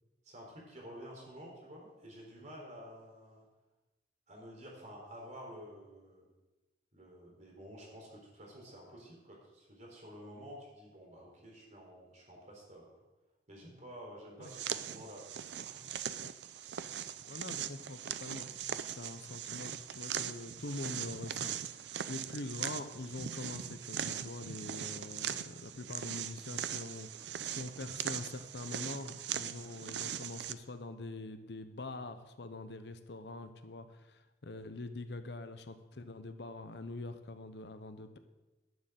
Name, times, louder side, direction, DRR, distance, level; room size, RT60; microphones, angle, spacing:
voice 1, 0.2-3.4 4.3-6.3 6.9-12.8 13.5-15.9, equal, 45° right, -2 dB, 3.8 m, -51 dB
sound 1, 14.4-30.5, right 9 dB, 75° right, 0.5 m, -40 dB
voice 2, 17.3-38.2, left 2 dB, 70° left, 10 dB, 0.8 m, -44 dB
11.0 x 6.8 x 7.5 m, 1.1 s
head